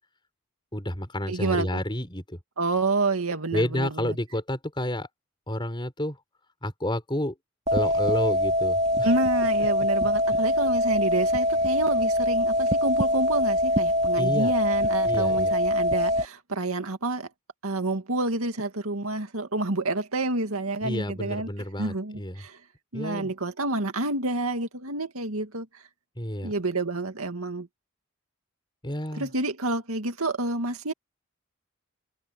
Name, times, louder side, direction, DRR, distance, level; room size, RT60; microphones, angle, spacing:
voice 1, 0.7-2.4 3.5-5.1 5.5-6.2 6.6-7.3 7.7-9.1 10.3-10.5 14.2-14.5 15.0-15.5 20.8-22.4 22.9-23.3 26.2-26.5 28.8-29.3, left 1 dB, 20° left, 5.2 m, -30 dB
voice 2, 1.3-1.8 2.6-4.2 9.0-17.3 17.6-21.5 21.8-22.6 22.9-25.7 26.4-27.7 29.1-30.9, right 2 dB, 80° right, 2.2 m, -28 dB
sound 1, 7.7-16.3, left 1 dB, 30° right, 2.4 m, -23 dB
head